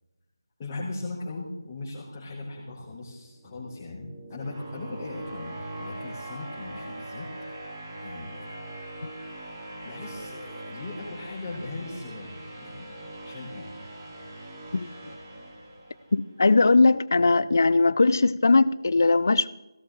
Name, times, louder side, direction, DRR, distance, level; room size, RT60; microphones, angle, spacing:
voice 1, 0.6-7.3 8.0-8.5 8.8-8.9 9.8-12.9 13.2-13.7, left 2 dB, 20° left, 3.7 m, -38 dB
sound 1, 3.3-16.3, right 1 dB, 30° right, 3.2 m, -41 dB
voice 2, 16.1-19.5, left 3 dB, 50° left, 0.6 m, -20 dB
18.0 x 17.0 x 3.8 m
figure-of-eight pair, 160°, 2 cm